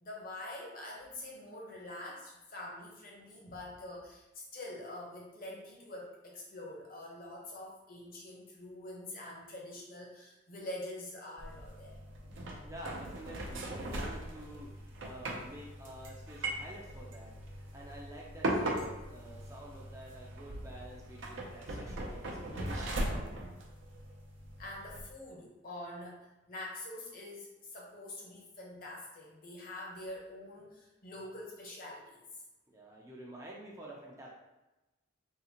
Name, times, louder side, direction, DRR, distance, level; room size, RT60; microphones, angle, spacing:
voice 1, 0.0-12.0 24.6-32.2, left 1 dB, 45° left, -2 dB, 0.8 m, -45 dB
sound 1, 11.4-25.0, right 1 dB, 75° right, 0.6 m, -39 dB
voice 2, 12.6-23.0 32.7-34.3, right 1 dB, 15° right, -3 dB, 0.4 m, -49 dB
3.7 x 2.5 x 2.8 m, 1.0 s
head